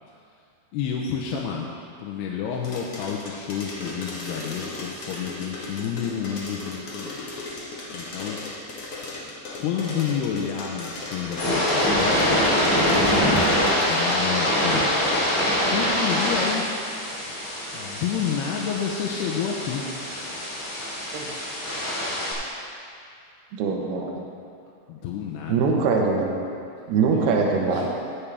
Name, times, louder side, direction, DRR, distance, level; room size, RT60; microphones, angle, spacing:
voice 1, 0.7-7.2 7.9-8.4 9.6-12.4 13.7-14.9 15.7-16.7 17.7-19.8 24.9-25.6 27.1-27.9, left 7 dB, 85° left, -2 dB, 2.7 m, -30 dB
sound 1, 2.6-14.1, left 2 dB, 60° left, 1.5 m, -36 dB
sound 2, 11.2-22.3, left 1 dB, 35° left, 3.7 m, -24 dB
voice 2, 23.5-24.3 25.5-26.4 26.9-27.9, right 4 dB, 75° right, 0 dB, 3.0 m, -23 dB
18.0 x 7.2 x 3.4 m, 2.5 s
omnidirectional pair, 4.8 m